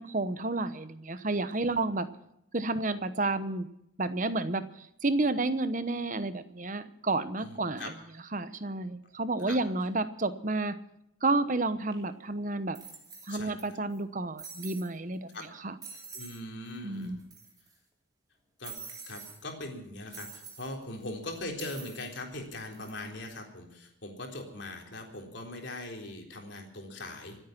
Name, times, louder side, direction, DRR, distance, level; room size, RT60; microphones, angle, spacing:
voice 1, 0.0-2.1 2.5-3.7 4.0-7.9 8.3-10.8 11.2-12.8 13.2-15.4 15.6-15.7 16.8-17.2, right 2 dB, 40° right, 12 dB, 1.0 m, -31 dB
voice 2, 7.4-7.9 9.5-9.6 13.3-13.5 15.3-15.5 16.1-17.2 18.6-27.4, left 2 dB, 60° left, 2 dB, 3.8 m, -41 dB
sound 1, 11.9-12.0 12.7-13.6 13.9-14.0 14.4-14.9 15.3-15.4 15.8-16.4 16.7-16.8 17.0-17.7 18.6-19.4 20.1-20.7 21.6-22.1 22.6-22.9, right 5 dB, 20° right, 3.1 m, -46 dB
25.5 x 9.0 x 6.0 m, 0.78 s
head